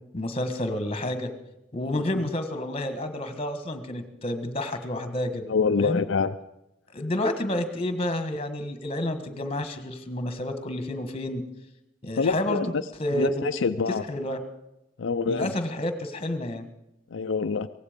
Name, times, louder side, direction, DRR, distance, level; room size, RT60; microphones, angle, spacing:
voice 1, 0.1-1.3 1.7-5.4 5.8-6.0 6.9-11.4 12.0-12.7 13.0-13.4 14.1-14.4 15.3-16.7, left 1 dB, 30° left, 8 dB, 1.6 m, -29 dB
voice 2, 5.5-6.4 12.2-12.7 13.1-14.0 15.0-15.5 17.1-17.7, left 5 dB, 80° left, 8 dB, 0.5 m, -26 dB
17.5 x 15.5 x 5.2 m, 0.89 s
head